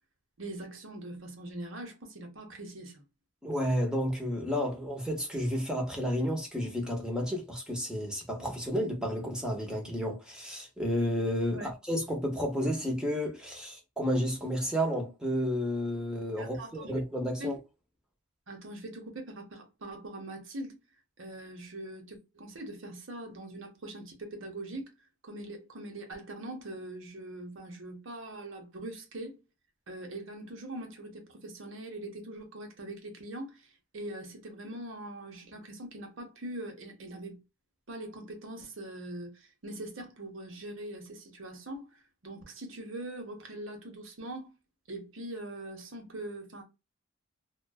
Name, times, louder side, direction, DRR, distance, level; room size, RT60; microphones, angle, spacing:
voice 1, 0.4-3.0 11.5-11.7 16.4-16.9 17.4-17.6 18.5-20.8 21.2-24.9 25.2-29.4 29.9-37.4 37.9-44.5 44.9-46.6, right 1 dB, 60° right, 0.8 m, -42 dB
voice 2, 3.4-17.6, equal, 5° right, 0.7 m, -31 dB
2.5 x 2.2 x 2.2 m
head